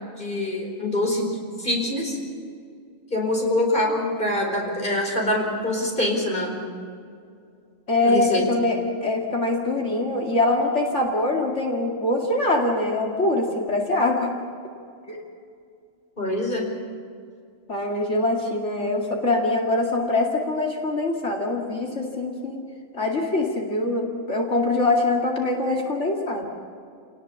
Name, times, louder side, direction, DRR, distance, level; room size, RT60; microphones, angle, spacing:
voice 1, 0.2-2.2 3.1-6.6 8.0-8.4 16.2-16.7, left 1 dB, 40° left, 0 dB, 4.9 m, -25 dB
voice 2, 7.9-14.3 15.1-15.2 17.7-22.6 22.9-26.5, left 2 dB, 65° left, 0 dB, 2.6 m, -23 dB
28.0 x 18.5 x 7.1 m, 2.3 s
omnidirectional pair, 1.3 m